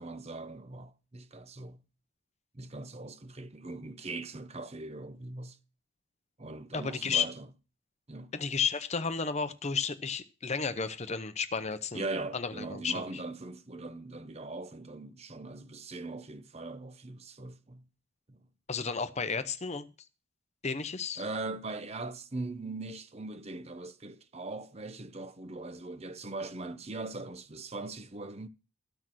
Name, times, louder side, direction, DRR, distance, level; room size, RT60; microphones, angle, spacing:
voice 1, 0.0-1.8 2.5-5.6 6.4-7.5 8.1-8.3 11.9-17.8 18.3-18.5 21.2-28.5, right 2 dB, 30° right, 0.8 m, -40 dB
voice 2, 6.7-7.3 8.3-12.1 12.3-13.1 18.7-19.9 20.6-21.2, left 5 dB, 30° left, 0.7 m, -32 dB
14.0 x 6.4 x 6.2 m
head